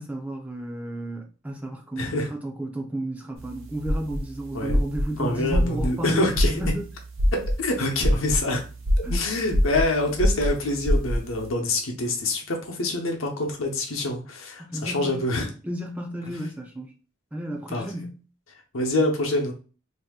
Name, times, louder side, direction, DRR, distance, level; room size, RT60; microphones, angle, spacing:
voice 1, 0.0-6.9 9.0-9.1 14.6-15.3 15.6-16.9 17.3-18.2, right 1 dB, 5° right, 0.4 m, -32 dB
voice 2, 2.0-2.3 4.5-4.8 5.2-6.5 7.3-8.6 9.1-15.5 17.7-17.9 18.7-19.5, left 2 dB, 75° left, 0.8 m, -26 dB
sound 1, 3.4-11.5, equal, 70° right, 0.7 m, -24 dB
2.8 x 2.6 x 3.5 m
head